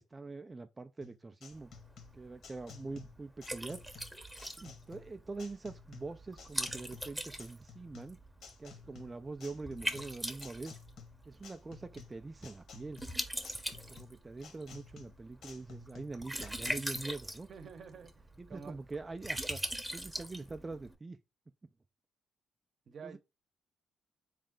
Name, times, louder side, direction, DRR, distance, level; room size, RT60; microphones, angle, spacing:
voice 1, 0.0-1.7 2.1-3.8 4.6-8.2 8.6-10.8 11.3-13.0 13.9-17.5 18.4-19.6 19.9-21.2 23.0-23.2, right 3 dB, 25° right, 0.4 m, -44 dB
sound 1, 1.0-17.0, left 6 dB, 70° left, 1.2 m, -54 dB
Liquid, 1.5-20.9, right 1 dB, 5° right, 0.8 m, -42 dB
voice 2, 17.5-18.8 22.9-23.2, right 6 dB, 55° right, 0.8 m, -49 dB
3.8 x 3.2 x 3.7 m
cardioid pair, 90°, 0 cm